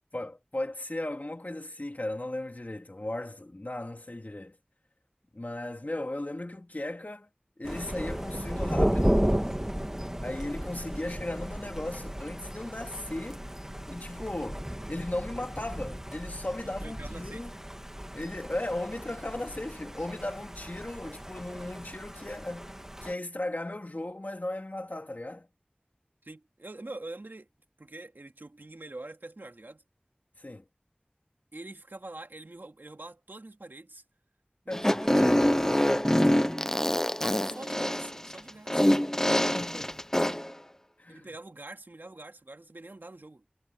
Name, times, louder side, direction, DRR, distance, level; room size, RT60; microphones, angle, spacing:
voice 1, 0.1-4.6 5.3-7.3 7.6-9.3 10.2-13.4 13.9-17.5 18.1-25.5 30.4-30.6 34.7-35.0 37.2-37.4 39.2-40.0 41.0-41.3, left 1 dB, 55° left, 2.4 m, -36 dB
Thunder, 7.6-23.1, equal, 15° right, 1.9 m, -34 dB
voice 2, 16.6-17.6 26.2-27.5 27.8-29.8 31.5-34.0 34.6-35.3 37.2-39.0 40.2-40.4 41.1-43.4, right 2 dB, 80° right, 2.5 m, -45 dB
Fart, 34.7-40.5, left 1 dB, 15° left, 0.6 m, -25 dB
wide cardioid pair, 40°, 3 cm